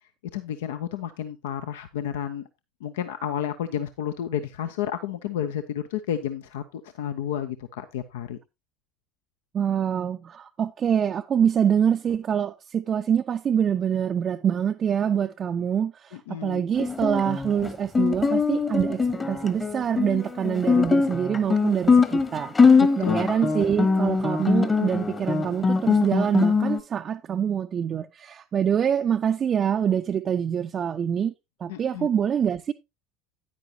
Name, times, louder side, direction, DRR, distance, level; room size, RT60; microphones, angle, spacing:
voice 1, 0.3-2.5 2.8-8.4 16.1-16.6 23.0-23.2 31.7-32.1, left 10 dB, 65° left, 0.7 m, -31 dB
voice 2, 9.5-31.3 31.6-32.7, right 8 dB, 35° right, 0.5 m, -25 dB
Guitar, 16.8-26.8, left 4 dB, 20° left, 1.2 m, -22 dB
9.8 x 9.7 x 2.8 m
figure-of-eight pair, 70°, 0 cm